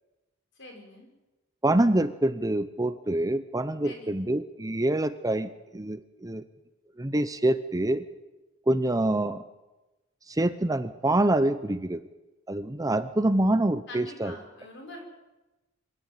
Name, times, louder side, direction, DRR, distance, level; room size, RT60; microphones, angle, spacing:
voice 1, 0.6-1.1 3.8-4.2 13.9-15.0, left 1 dB, 60° left, 2 dB, 6.1 m, -44 dB
voice 2, 1.6-6.4 7.0-8.1 8.7-9.4 10.3-12.0 12.5-14.3, right 1 dB, 15° right, 12 dB, 0.8 m, -26 dB
26.5 x 13.5 x 9.2 m, 1.1 s
head